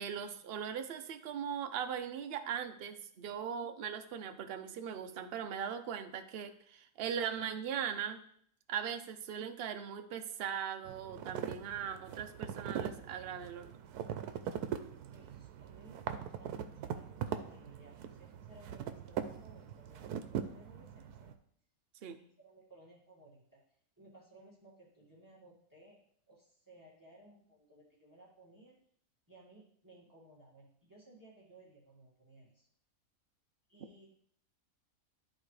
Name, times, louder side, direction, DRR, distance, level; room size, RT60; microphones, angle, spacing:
voice 1, 0.0-8.2 8.7-13.7 22.0-22.2, right 8 dB, 55° right, 8 dB, 0.7 m, -39 dB
sound 1, 10.8-21.3, right 9 dB, 85° right, 1.1 m, -41 dB
voice 2, 15.1-21.3 22.2-23.6 24.0-28.7 29.3-32.7 33.7-34.1, right 1 dB, 15° right, -5 dB, 1.8 m, -60 dB
12.5 x 4.2 x 3.2 m, 0.64 s
omnidirectional pair, 1.6 m